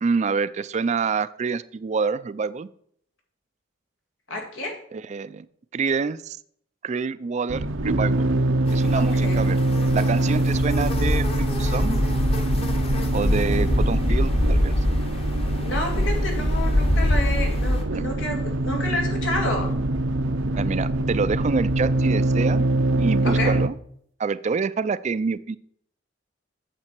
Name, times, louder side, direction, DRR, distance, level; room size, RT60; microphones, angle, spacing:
voice 1, 0.0-2.7 4.9-5.5 5.7-6.4 6.8-8.3 8.7-9.6 9.9-12.0 13.1-14.8 17.9-18.1 20.6-22.6 23.0-23.8 24.2-25.6, right 5 dB, 40° right, 17 dB, 0.4 m, -27 dB
voice 2, 4.3-4.8 8.9-9.5 13.5-14.2 15.6-19.7 23.2-23.5, left 1 dB, 90° left, 1 dB, 2.3 m, -30 dB
sound 1, 7.5-23.7, right 1 dB, 85° right, 0.7 m, -24 dB
sound 2, 8.7-17.8, left 1 dB, 30° left, 1.0 m, -24 dB
8.7 x 7.4 x 4.5 m, 0.65 s
head